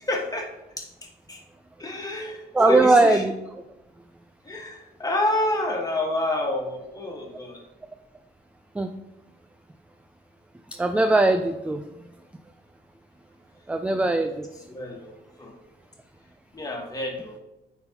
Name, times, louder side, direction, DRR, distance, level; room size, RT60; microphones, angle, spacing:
voice 1, 0.1-0.5 1.3-1.4 1.8-3.2 4.5-7.6 14.7-15.1 15.4-15.5 16.5-17.4, left 1 dB, 20° left, 0 dB, 1.4 m, -28 dB
voice 2, 2.5-3.3 8.8-8.9 10.8-11.8 13.7-14.4, right 2 dB, 5° right, 7 dB, 0.3 m, -19 dB
9.3 x 4.0 x 2.9 m, 0.98 s
cardioid pair, 90°, 20 cm